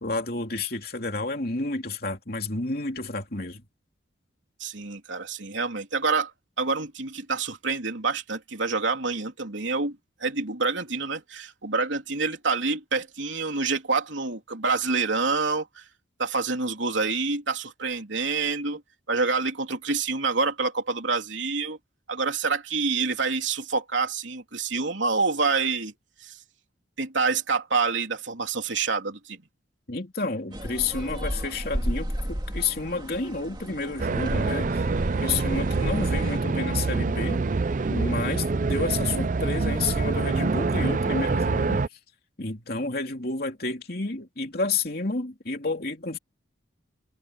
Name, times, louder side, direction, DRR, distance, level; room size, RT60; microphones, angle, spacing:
voice 1, 0.0-3.6 29.9-34.8 35.2-37.4 37.9-41.8 42.4-46.2, left 3 dB, 50° left, 3.0 m, -30 dB
voice 2, 4.6-6.3 6.6-15.8 16.2-18.8 19.1-21.8 22.1-25.9 26.2-26.4 27.0-29.4, right 4 dB, 75° right, 3.4 m, -27 dB
sound 1, 30.5-36.4, equal, 25° right, 2.5 m, -33 dB
sound 2, 34.0-41.9, right 3 dB, 40° right, 0.4 m, -26 dB
head